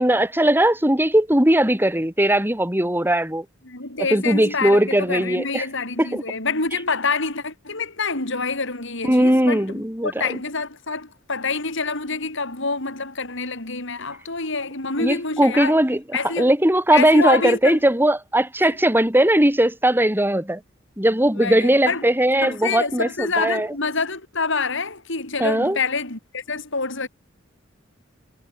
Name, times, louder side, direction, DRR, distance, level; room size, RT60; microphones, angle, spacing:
voice 1, 0.0-3.4 4.1-5.6 6.0-6.2 9.0-10.1 15.0-16.0 16.4-20.6 21.0-23.7 25.4-25.8, right 1 dB, 10° right, 7.6 m, -19 dB
voice 2, 3.6-15.7 16.1-16.5 16.9-17.8 18.6-18.8 21.3-22.1 22.4-27.1, left 4 dB, 65° left, 7.6 m, -27 dB
head